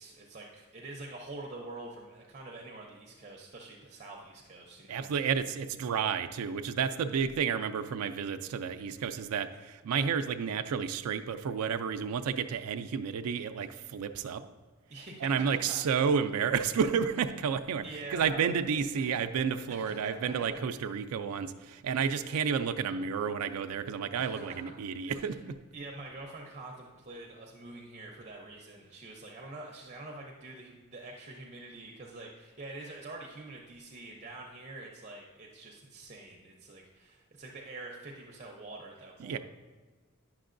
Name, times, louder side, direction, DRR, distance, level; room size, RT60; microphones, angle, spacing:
voice 1, 0.0-5.1 14.9-15.8 17.8-18.5 19.0-19.1 19.7-20.6 24.1-24.6 25.0-25.4 25.7-39.4, right 2 dB, 30° right, 0 dB, 0.6 m, -46 dB
voice 2, 4.9-14.5 15.2-17.8 18.1-25.5 39.2-39.4, right 6 dB, 85° right, 8 dB, 0.4 m, -31 dB
10.0 x 6.0 x 2.5 m, 1.3 s
head